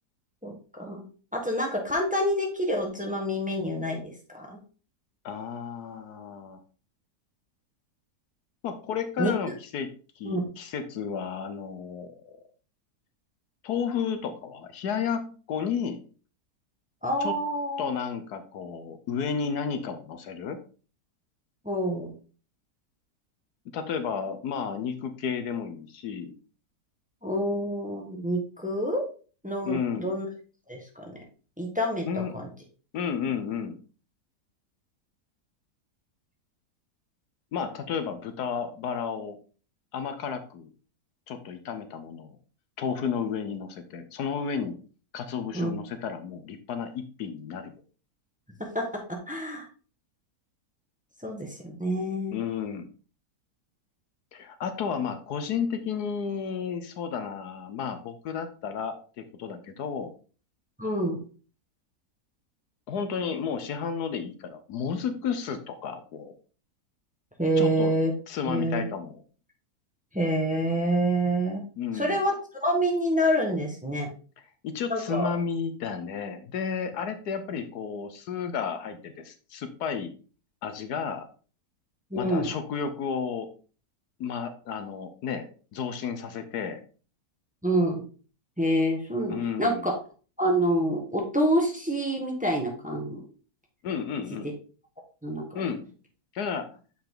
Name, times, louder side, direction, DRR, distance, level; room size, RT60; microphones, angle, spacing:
voice 1, 0.4-1.0 1.3-4.6 9.2-9.3 10.2-10.4 17.0-17.9 21.6-22.1 27.2-29.0 29.4-30.3 30.7-31.1 31.6-32.1 32.3-32.5 45.5-45.7 48.7-48.8 49.3-49.7 51.2-52.4 60.8-61.2 67.4-68.1 68.5-68.9 70.1-71.6 71.9-74.1 74.9-75.3 82.1-82.5 87.6-88.0 88.6-89.9 90.4-93.2 95.2-95.4, equal, 5° right, 1 dB, 1.4 m, -27 dB
voice 2, 5.2-6.6 8.6-12.4 13.6-16.0 17.2-17.4 17.8-20.6 23.7-26.3 29.6-30.1 32.0-32.5 32.9-33.8 37.5-39.4 39.9-40.7 41.3-42.4 42.8-44.8 45.1-47.7 52.3-52.9 54.3-60.1 62.9-66.3 67.6-68.0 68.3-69.2 71.8-72.2 74.6-80.1 80.6-81.3 82.2-83.5 84.2-86.8 89.3-89.8 93.8-94.5 95.5-95.9 96.3-96.8, left 6 dB, 75° left, 9 dB, 1.4 m, -32 dB
6.8 x 5.6 x 3.8 m, 0.37 s
omnidirectional pair, 1.7 m